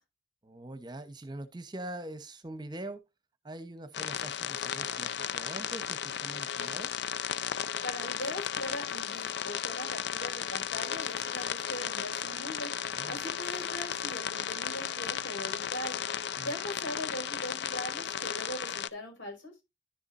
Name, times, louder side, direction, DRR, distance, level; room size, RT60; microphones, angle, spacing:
voice 1, 0.4-3.0 3.4-6.9 12.9-13.2 16.4-16.5, right 1 dB, 20° right, 0.9 m, -43 dB
sound 1, 3.9-18.9, left 9 dB, 60° left, 0.5 m, -35 dB
voice 2, 7.8-12.7 13.0-16.0 16.4-19.5, left 1 dB, 75° left, 5.3 m, -40 dB
11.0 x 7.1 x 2.6 m
head